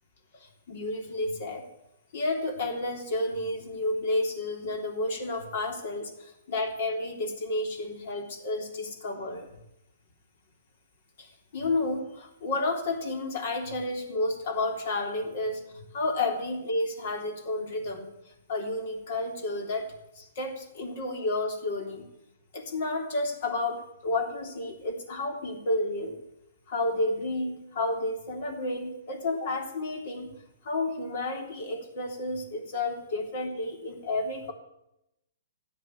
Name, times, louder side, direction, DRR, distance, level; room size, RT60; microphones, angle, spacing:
voice 1, 0.3-1.6 2.1-9.5 11.2-19.9 20.1-22.1 22.5-26.1 26.7-30.3 30.6-34.5, left 2 dB, 55° left, 4 dB, 3.3 m, -31 dB
14.0 x 9.0 x 8.2 m, 0.85 s
hypercardioid pair, 125°, 0 cm